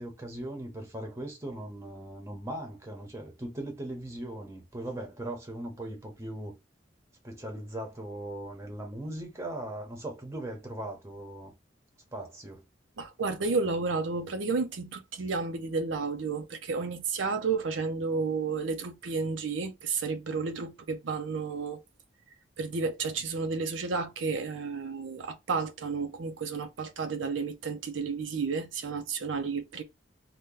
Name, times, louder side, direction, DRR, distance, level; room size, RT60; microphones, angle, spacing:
voice 1, 0.0-6.5 7.2-11.5 12.1-12.6, right 1 dB, 15° right, 0.8 m, -39 dB
voice 2, 13.0-21.8 22.6-29.8, right 4 dB, 85° right, 0.6 m, -32 dB
2.8 x 2.2 x 3.7 m
head